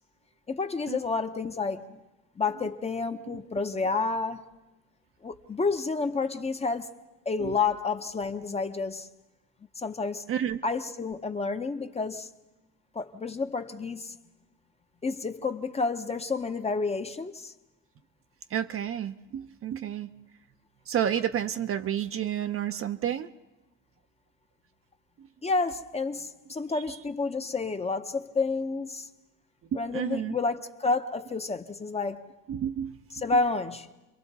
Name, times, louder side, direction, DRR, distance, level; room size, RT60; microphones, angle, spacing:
voice 1, 0.5-1.9 2.4-4.5 5.2-6.9 7.3-9.1 9.8-10.2 10.6-12.3 12.9-14.2 15.0-17.5 25.4-29.1 29.7-32.2 33.1-33.9, left 4 dB, 20° left, 0.7 m, -30 dB
voice 2, 10.3-10.6 18.5-20.1 20.9-23.3 25.2-25.3 26.7-27.0 29.9-30.4 32.5-33.0, right 10 dB, 40° right, 0.6 m, -30 dB
29.5 x 23.0 x 4.0 m
cardioid pair, 140°, 33 cm